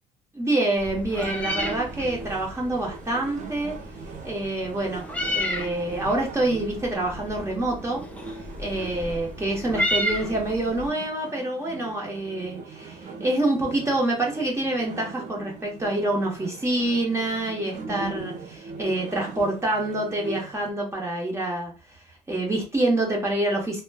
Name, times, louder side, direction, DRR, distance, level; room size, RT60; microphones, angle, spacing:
voice 1, 0.3-3.8 4.2-8.0 8.6-21.7 22.3-23.8, right 1 dB, 15° right, -2 dB, 1.0 m, -26 dB
Meow, 0.8-10.9, left 1 dB, 10° left, 0.4 m, -33 dB
sound 1, 1.2-20.7, right 4 dB, 45° right, 0.5 m, -40 dB
3.0 x 2.1 x 2.2 m, 0.31 s
cardioid pair, 110°, 17 cm